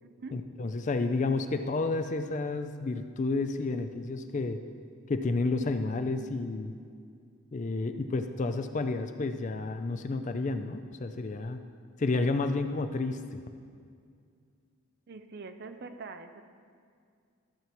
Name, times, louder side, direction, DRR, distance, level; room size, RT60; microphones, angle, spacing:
voice 1, 0.3-4.6 5.1-6.7 7.5-11.6 12.0-13.4, left 3 dB, 35° left, 8 dB, 0.3 m, -31 dB
voice 2, 15.1-16.4, right 4 dB, 45° right, 9 dB, 0.4 m, -43 dB
14.0 x 7.1 x 3.0 m, 2.2 s
head